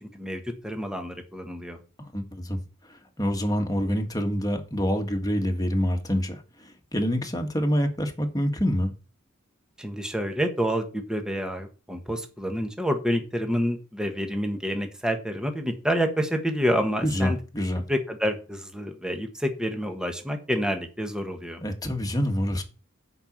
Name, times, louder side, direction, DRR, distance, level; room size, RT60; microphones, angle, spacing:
voice 1, 0.0-1.8 9.8-17.4 17.9-21.6, equal, 5° right, 1.4 m, -28 dB
voice 2, 2.0-2.6 3.2-6.4 6.9-8.9 17.0-17.8 21.6-22.6, equal, 20° left, 1.6 m, -26 dB
8.0 x 5.4 x 7.4 m
head